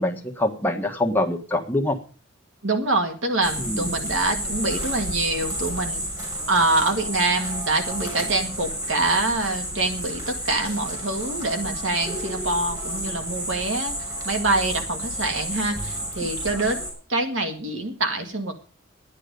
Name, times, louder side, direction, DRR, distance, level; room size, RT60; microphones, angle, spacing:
voice 1, 0.0-2.0 3.6-3.9, left 1 dB, 10° left, 3 dB, 1.5 m, -24 dB
voice 2, 2.6-6.0 6.5-14.0 14.3-18.5, right 2 dB, 75° right, 5 dB, 1.9 m, -25 dB
sound 1, 3.4-16.9, right 1 dB, 20° right, 6.2 m, -31 dB
12.0 x 10.0 x 5.3 m, 0.38 s
head